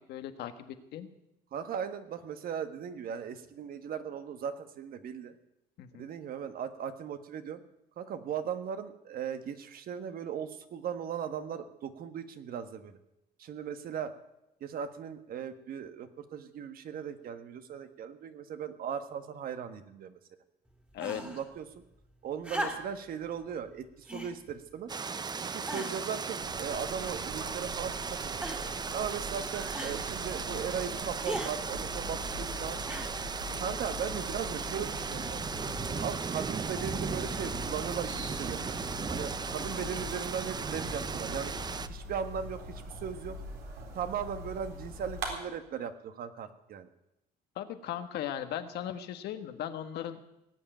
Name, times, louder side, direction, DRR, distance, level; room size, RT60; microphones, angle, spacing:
voice 1, 0.1-1.1 5.8-6.1 20.9-21.2 33.5-33.6 47.5-50.2, left 10 dB, 75° left, 8 dB, 1.4 m, -38 dB
voice 2, 1.5-5.3 5.9-7.6 8.0-13.0 13.4-14.1 14.6-20.2 21.2-21.6 22.2-24.9 25.4-28.4 28.9-32.8 33.6-35.4 36.0-41.5 41.9-43.4 43.9-46.9, right 8 dB, 60° right, 9 dB, 1.5 m, -38 dB
sound 1, 21.0-21.5 22.4-23.1 24.1-24.4 25.1-25.2 25.7-26.1 27.0-27.5 28.4-28.8 29.7-30.0 31.2-31.6 32.9-33.3 34.4-34.5, right 1 dB, 5° right, 2.5 m, -38 dB
sound 2, 24.9-41.9, right 5 dB, 25° right, 0.6 m, -36 dB
sound 3, 26.4-45.3, left 1 dB, 80° right, 3.8 m, -43 dB
18.5 x 7.5 x 9.2 m, 0.87 s
cardioid pair, 110°, 17 cm